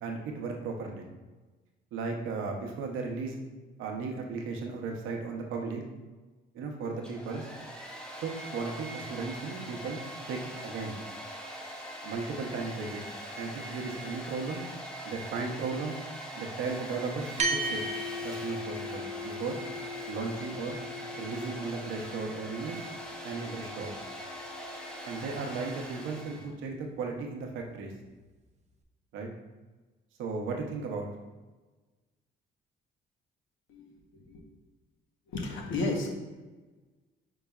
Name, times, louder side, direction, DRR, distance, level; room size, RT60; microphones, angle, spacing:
voice 1, 0.0-1.1 1.9-3.4 3.8-5.8 6.5-7.5 8.2-10.0 10.3-11.0 12.0-13.0 13.4-14.6 15.0-16.0 16.3-17.3 17.6-17.8 18.2-19.6 20.1-20.8 21.1-22.8 23.2-23.9 25.1-27.9 29.1-29.3 30.2-31.1, right 4 dB, 85° right, 2 dB, 0.7 m, -35 dB
Domestic sounds home sounds, 6.9-26.5, equal, 5° left, 0.7 m, -42 dB
sound 1, 17.4-26.1, equal, 35° right, 0.6 m, -38 dB
voice 2, 33.7-34.4 35.3-36.1, left 2 dB, 75° left, 1 dB, 1.0 m, -33 dB
5.4 x 3.9 x 2.3 m, 1.2 s
cardioid pair, 90°, 20 cm